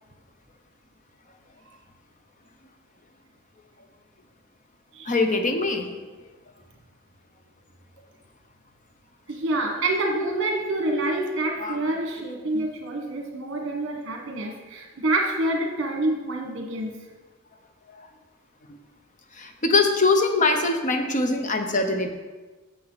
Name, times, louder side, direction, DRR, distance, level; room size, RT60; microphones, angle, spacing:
voice 1, 5.1-5.9 11.6-11.8 12.5-12.6 19.4-22.1, left 3 dB, 35° left, 6 dB, 0.8 m, -22 dB
voice 2, 9.3-16.9, right 2 dB, 55° right, 2 dB, 1.5 m, -27 dB
8.6 x 6.9 x 4.0 m, 1.3 s
head